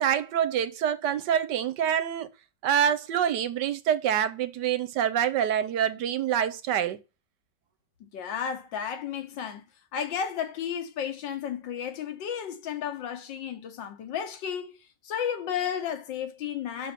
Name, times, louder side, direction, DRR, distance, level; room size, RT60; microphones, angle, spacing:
voice 1, 0.0-2.3 2.6-7.0, right 9 dB, 75° right, 1.3 m, -26 dB
voice 2, 8.0-9.6 9.9-16.9, left 8 dB, 85° left, 1.7 m, -33 dB
6.3 x 5.6 x 6.7 m
omnidirectional pair, 2.0 m